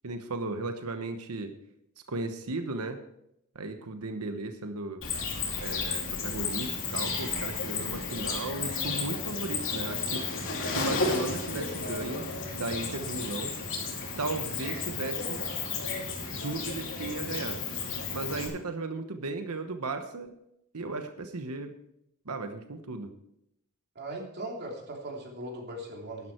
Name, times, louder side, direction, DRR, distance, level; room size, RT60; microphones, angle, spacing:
voice 1, 0.0-1.5 2.1-3.0 3.5-5.0 5.6-10.2 10.7-12.3 12.5-13.5 14.2-15.4 16.3-17.6 18.1-20.3 20.7-21.7 22.2-23.1, right 3 dB, 90° right, 7 dB, 1.1 m, -35 dB
Cricket, 5.0-18.5, left 4 dB, 65° left, 2.8 m, -33 dB
voice 2, 23.9-26.3, right 1 dB, 50° right, 0 dB, 3.0 m, -39 dB
11.5 x 11.0 x 4.5 m, 0.78 s
head